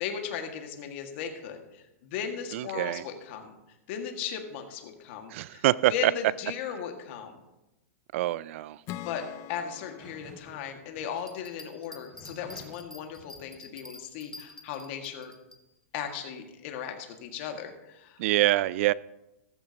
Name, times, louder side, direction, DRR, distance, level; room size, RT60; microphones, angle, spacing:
voice 1, 0.0-3.5 3.9-5.7 5.9-7.4 9.0-15.3 15.9-18.2, left 8 dB, 55° left, 4 dB, 2.0 m, -37 dB
voice 2, 2.5-3.0 5.3-5.9 8.1-8.8 18.2-18.9, right 16 dB, 55° right, 21 dB, 0.3 m, -25 dB
Acoustic guitar / Strum, 8.9-12.3, left 13 dB, 35° left, 0.5 m, -45 dB
sound 1, 10.0-10.5 10.9-11.0 11.9-12.9 13.2-13.4, right 1 dB, 10° right, 5.1 m, -50 dB
sound 2, 11.2-15.6, left 2 dB, 5° left, 1.0 m, -48 dB
14.5 x 14.0 x 2.9 m, 0.96 s
hypercardioid pair, 130°, 8 cm